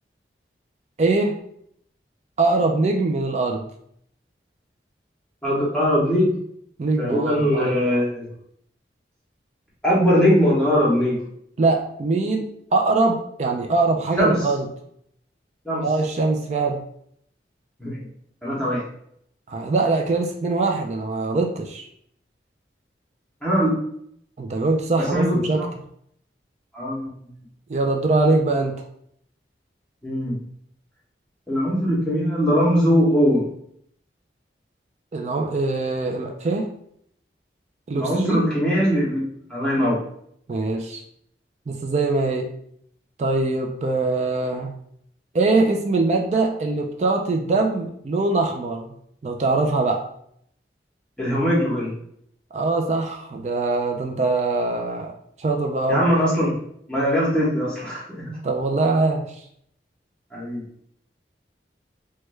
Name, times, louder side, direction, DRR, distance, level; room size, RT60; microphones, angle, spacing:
voice 1, 1.0-1.3 2.4-3.7 6.8-7.7 11.6-14.7 15.8-16.8 19.5-21.9 24.4-25.7 27.7-28.8 35.1-36.7 37.9-38.4 40.5-41.0 41.7-42.5 43.2-44.7 45.3-48.9 49.2-50.0 52.5-55.1 55.4-56.0 58.4-59.2, right 3 dB, 40° right, 3 dB, 0.3 m, -22 dB
voice 2, 5.4-6.3 7.0-8.3 9.8-11.2 14.2-14.4 15.6-15.8 17.8-18.0 18.4-18.8 23.4-23.7 25.1-25.7 26.7-27.1 30.0-30.3 31.5-33.4 37.9-39.2 39.5-40.0 51.2-51.9 55.9-56.5 56.9-58.4 60.3-60.6, equal, 5° left, -8 dB, 0.8 m, -21 dB
3.1 x 2.2 x 3.2 m, 0.69 s
head